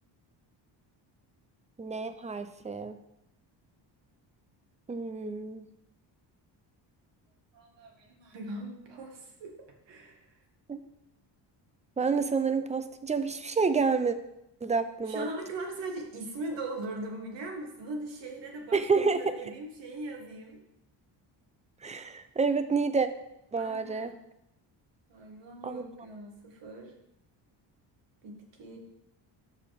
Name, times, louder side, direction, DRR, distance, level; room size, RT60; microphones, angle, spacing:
voice 1, 1.8-3.0 4.9-5.7 10.7-10.8 12.0-14.2 14.6-15.3 18.7-19.2 21.8-23.1 23.5-24.1 25.6-25.8, right 4 dB, 15° right, 10 dB, 0.6 m, -28 dB
voice 2, 7.5-9.6 9.9-10.4 15.1-18.9 19.2-20.6 23.6-24.1 25.1-26.9 28.2-28.8, right 2 dB, 75° right, 1 dB, 2.1 m, -40 dB
13.0 x 4.9 x 3.7 m, 0.84 s
cardioid pair, 105°, 44 cm